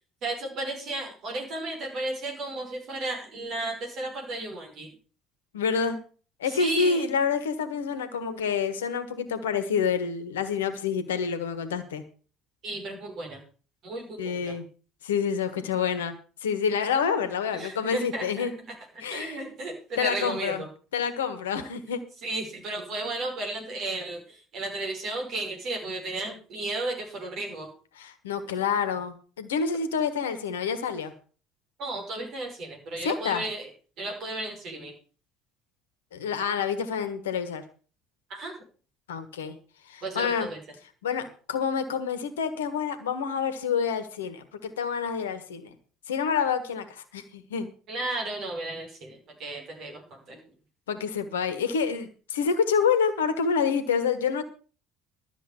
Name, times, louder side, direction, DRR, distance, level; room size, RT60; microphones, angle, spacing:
voice 1, 0.2-4.9 6.4-7.1 12.6-13.4 13.8-14.6 17.5-20.7 22.2-27.7 31.8-33.7 34.0-34.9 38.3-38.6 40.0-40.6 47.9-50.4, right 2 dB, 45° right, 2 dB, 5.5 m, -34 dB
voice 2, 5.5-6.0 6.4-12.0 14.2-14.6 15.0-16.2 16.4-18.5 19.0-19.4 20.0-20.6 20.9-22.0 28.0-31.1 33.0-33.4 36.1-37.6 39.1-39.6 39.9-40.5 41.0-45.7 46.1-47.7 50.9-54.4, left 6 dB, 70° left, 11 dB, 1.4 m, -28 dB
13.0 x 7.3 x 7.0 m, 0.39 s
figure-of-eight pair, 60°, 0 cm